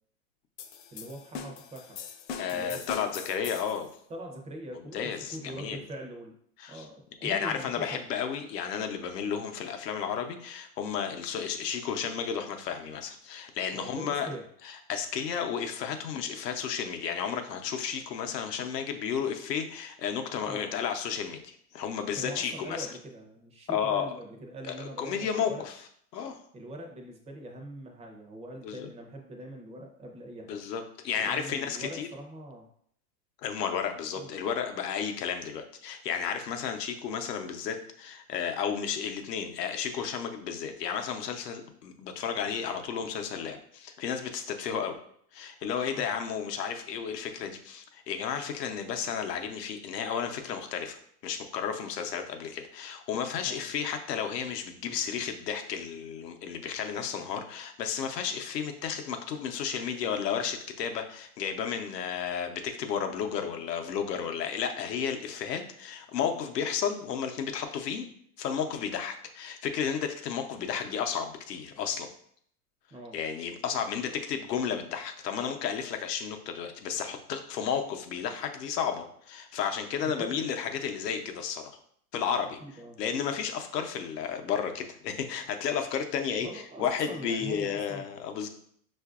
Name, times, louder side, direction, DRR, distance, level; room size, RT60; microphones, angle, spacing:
sound 1, 0.6-3.9, left 7 dB, 50° left, 0.5 m, -41 dB
voice 1, 0.9-2.0 2.5-3.0 4.1-6.3 6.7-8.1 13.7-14.5 20.5-20.8 22.2-25.7 26.5-30.6 31.2-32.7 34.1-34.3 46.0-46.2 53.4-53.7 72.9-73.2 80.0-80.4 82.6-83.0 86.4-88.1, right 1 dB, 15° right, 1 dB, 0.4 m, -43 dB
voice 2, 2.4-3.9 4.9-5.8 6.6-6.9 7.2-14.3 14.6-22.9 23.7-24.0 24.7-25.7 26.1-26.4 28.6-28.9 30.5-32.1 33.4-45.0 45.3-68.1 68.4-72.1 73.1-81.6 82.1-82.6 83.0-88.5, left 7 dB, 85° left, 5 dB, 0.7 m, -32 dB
5.7 x 2.5 x 2.3 m, 0.64 s
hypercardioid pair, 120°, 47 cm